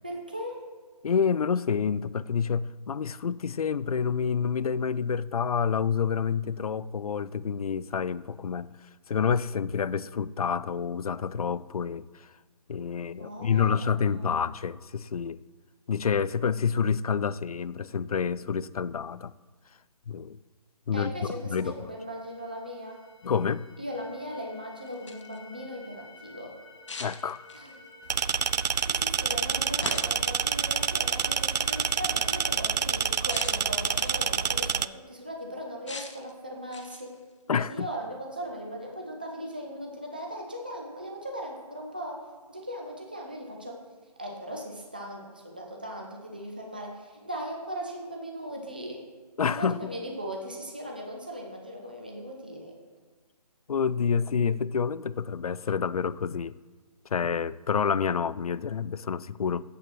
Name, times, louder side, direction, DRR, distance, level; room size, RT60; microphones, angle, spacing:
voice 1, 0.0-0.6 13.1-14.3 20.9-23.0 23.8-26.6 27.5-27.7 28.8-37.2 37.7-43.8 44.2-49.1 49.4-52.8, equal, 15° right, 0 dB, 0.4 m, -38 dB
voice 2, 1.0-8.7 9.1-12.3 12.7-15.4 15.9-19.3 20.1-20.4 20.9-21.7 23.2-23.6 27.0-27.5 37.5-37.9 49.4-49.9 53.7-56.5 57.1-59.6, left 6 dB, 65° left, 18 dB, 0.4 m, -28 dB
sound 1, 21.8-32.5, left 2 dB, 5° left, 0.8 m, -51 dB
sound 2, 24.9-25.4 26.9-27.8 29.8-30.3 31.3-31.5 33.3-34.4 35.9-36.3 36.7-37.2, left 4 dB, 45° left, 0.9 m, -40 dB
sound 3, 28.1-34.9, right 7 dB, 85° right, 0.4 m, -27 dB
7.7 x 6.7 x 6.1 m, 1.4 s
hypercardioid pair, 175°, 20 cm